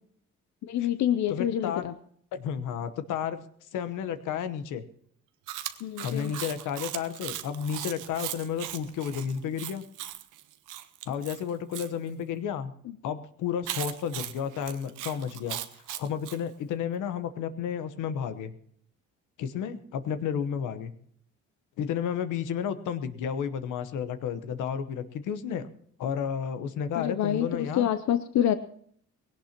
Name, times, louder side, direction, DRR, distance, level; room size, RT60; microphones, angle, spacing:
voice 1, 0.6-1.9 5.8-6.3 12.8-12.9 27.0-28.5, left 10 dB, 65° left, 11 dB, 0.7 m, -27 dB
voice 2, 1.3-1.9 2.3-3.4 3.7-4.8 6.0-9.8 11.1-12.7 13.0-15.6 16.0-18.5 19.4-20.9 21.8-25.7 26.0-27.9, left 8 dB, 85° left, 11 dB, 1.1 m, -32 dB
Chewing mastication, 5.5-11.9 13.6-16.4, right 13 dB, 90° right, 0.8 m, -38 dB
19.5 x 17.5 x 2.9 m, 0.62 s
cardioid pair, 90°, 30 cm